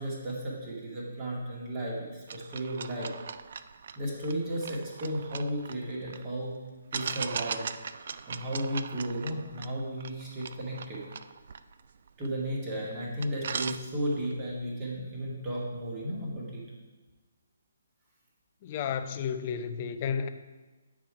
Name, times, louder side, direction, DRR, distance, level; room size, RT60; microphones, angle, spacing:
voice 1, 0.0-3.1 4.0-6.6 6.9-7.7 8.3-11.0 12.2-16.6, right 1 dB, 25° right, -4 dB, 2.1 m, -34 dB
sound 1, 2.3-6.2 6.9-12.5 12.9-13.0 13.2-14.3, right 6 dB, 45° right, 0.3 m, -39 dB
voice 2, 18.6-20.3, left 7 dB, 30° left, 10 dB, 0.5 m, -32 dB
9.1 x 5.0 x 4.7 m, 1.2 s
figure-of-eight pair, 135°, 0 cm